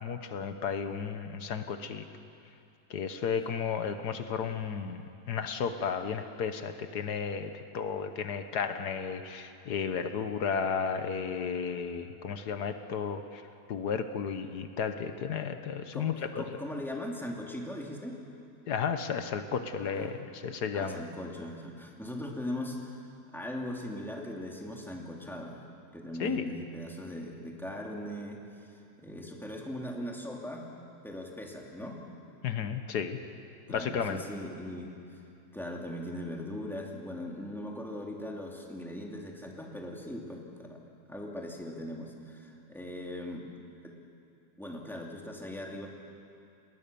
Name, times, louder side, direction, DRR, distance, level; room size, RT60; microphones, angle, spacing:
voice 1, 0.0-2.1 2.9-5.0 5.3-13.4 13.7-16.4 18.7-21.0 26.2-26.4 32.4-33.2 33.7-34.2, left 6 dB, 80° left, 8 dB, 1.6 m, -33 dB
voice 2, 16.3-18.2 19.8-20.1 20.7-23.0 23.3-25.6 25.9-28.4 29.0-30.7 31.0-32.0 33.7-35.0 35.5-40.8 41.1-43.4 43.8-44.0 44.6-45.9, left 1 dB, ahead, -1 dB, 2.7 m, -39 dB
30.0 x 19.5 x 6.9 m, 2.6 s
omnidirectional pair, 1.7 m